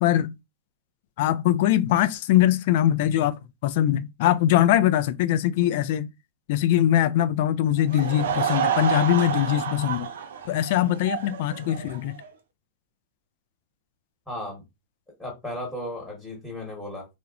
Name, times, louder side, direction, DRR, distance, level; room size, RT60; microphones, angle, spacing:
voice 1, 0.0-0.3 1.2-6.1 6.5-10.1 10.5-12.2, left 12 dB, 55° left, 0.3 m, -22 dB
Laughter / Crowd, 7.8-12.3, right 8 dB, 80° right, 0.5 m, -29 dB
voice 2, 14.3-14.6 15.2-17.1, left 1 dB, 5° left, 1.1 m, -35 dB
2.9 x 2.0 x 2.4 m
hypercardioid pair, 130°, 0 cm